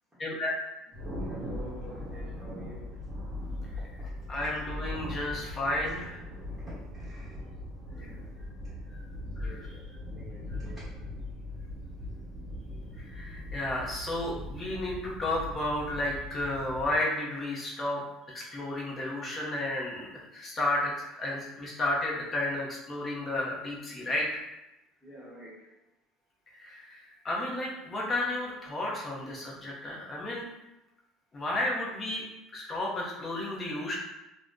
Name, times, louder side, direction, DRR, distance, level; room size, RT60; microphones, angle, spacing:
voice 1, 0.2-0.5 4.3-6.2 8.0-8.1 9.4-9.7 10.5-10.6 13.0-24.3 26.5-30.4 31.3-32.2 32.5-33.9, left 1 dB, 20° left, -3 dB, 0.6 m, -32 dB
Thunder, 0.9-17.0, left 1 dB, 45° right, 1.1 m, -40 dB
voice 2, 1.1-3.0 4.0-4.2 7.0-7.4 7.9-8.3 9.4-9.8 10.1-10.9 25.0-25.7, equal, 5° right, -11 dB, 0.9 m, -49 dB
2.5 x 2.0 x 3.5 m, 0.94 s
cardioid pair, 165°, 0 cm